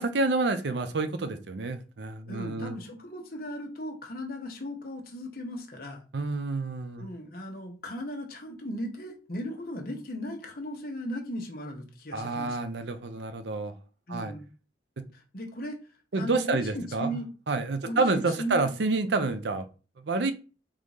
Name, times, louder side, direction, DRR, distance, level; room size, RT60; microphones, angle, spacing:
voice 1, 0.0-2.7 6.1-7.1 12.1-13.7 14.1-14.3 15.0-15.1 16.1-17.2 17.5-19.7 20.0-20.3, right 3 dB, 80° right, 9 dB, 0.6 m, -28 dB
voice 2, 2.3-6.0 7.0-12.6 14.1-14.4 15.1-15.8 16.2-17.3 17.8-18.7, equal, 55° left, 2 dB, 1.1 m, -37 dB
3.8 x 2.7 x 4.8 m, 0.35 s
head